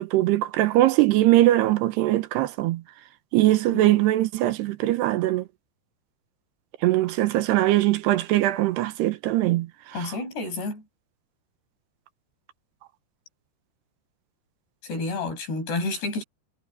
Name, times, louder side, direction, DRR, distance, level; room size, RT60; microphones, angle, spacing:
voice 1, 0.0-2.8 3.3-5.4 6.8-9.7 10.0-10.1, right 16 dB, 80° right, 3.0 m, -21 dB
voice 2, 3.7-4.0 9.9-10.8 14.8-16.2, left 3 dB, 75° left, 9.1 m, -30 dB
omnidirectional pair, 4.9 m